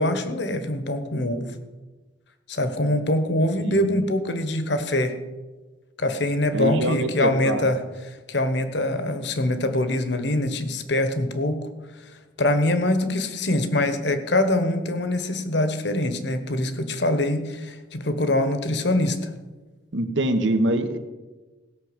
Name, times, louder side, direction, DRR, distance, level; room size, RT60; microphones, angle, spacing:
voice 1, 0.0-1.6 2.5-5.2 6.0-11.7 12.0-12.1 12.4-19.3, left 1 dB, 60° left, 9 dB, 1.2 m, -24 dB
voice 2, 6.5-7.7 19.9-21.0, right 1 dB, 70° right, 8 dB, 1.1 m, -24 dB
17.0 x 5.9 x 7.9 m, 1.2 s
head